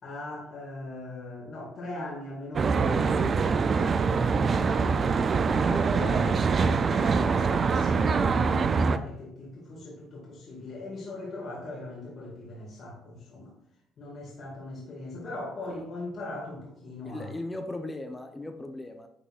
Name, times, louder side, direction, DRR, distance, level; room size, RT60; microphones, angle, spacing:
voice 1, 0.0-13.5 14.0-17.3, left 2 dB, 55° left, -4 dB, 2.2 m, -39 dB
Traffic noise roadway noise, 2.5-9.0, right 5 dB, 45° right, 0.4 m, -24 dB
voice 2, 17.0-19.1, left 2 dB, 15° left, 5 dB, 0.8 m, -37 dB
10.0 x 3.9 x 2.5 m, 0.75 s
supercardioid pair, 65°, 0 cm